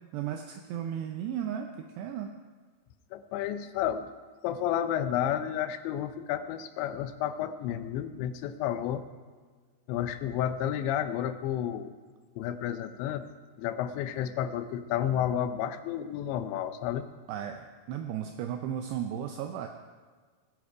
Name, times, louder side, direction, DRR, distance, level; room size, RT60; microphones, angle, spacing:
voice 1, 0.1-2.3 17.3-19.7, right 9 dB, 80° right, 5 dB, 2.6 m, -35 dB
voice 2, 3.1-4.1 4.4-9.1 9.9-11.9 12.4-13.3 13.6-17.1, left 10 dB, 85° left, 11 dB, 3.0 m, -31 dB
19.5 x 8.2 x 5.0 m, 1.5 s
omnidirectional pair, 5.1 m